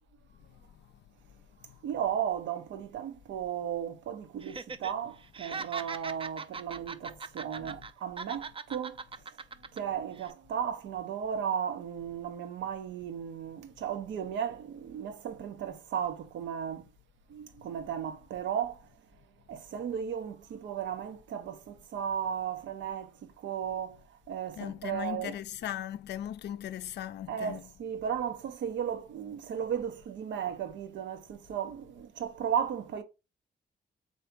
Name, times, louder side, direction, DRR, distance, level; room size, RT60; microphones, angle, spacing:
voice 1, 1.8-9.0 9.7-16.9 17.3-18.8 19.5-24.0 24.3-25.3 27.3-33.0, right 8 dB, 90° right, 0.7 m, -35 dB
Laughter, 4.4-4.9 5.2-7.9 8.2-9.8 10.2-10.3, right 4 dB, 30° right, 0.4 m, -40 dB
voice 2, 24.6-27.7, left 11 dB, 65° left, 0.4 m, -38 dB
3.4 x 2.7 x 4.5 m
cardioid pair, 70°, 19 cm